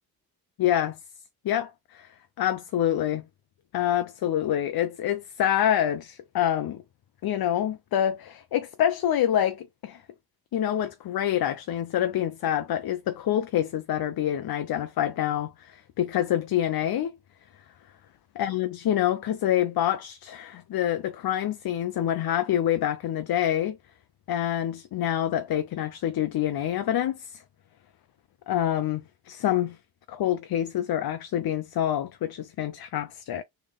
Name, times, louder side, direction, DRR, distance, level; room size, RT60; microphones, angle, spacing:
voice 1, 0.6-1.0 1.4-2.1 2.4-3.2 3.7-6.8 7.2-10.0 10.5-17.2 18.4-23.8 24.3-27.4 28.5-29.8 30.1-33.4, left 11 dB, 65° left, 0.7 m, -26 dB
3.4 x 3.4 x 3.6 m
cardioid pair, 60°, 38 cm